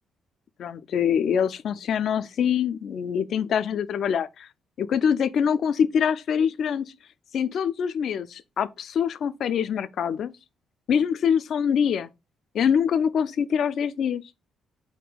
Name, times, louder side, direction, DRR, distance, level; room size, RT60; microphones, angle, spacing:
voice 1, 0.6-4.5 4.8-6.9 7.3-10.3 10.9-12.1 12.5-14.2, left 7 dB, 65° left, 0.3 m, -24 dB
3.6 x 2.2 x 4.0 m
cardioid pair, 90°, 0 cm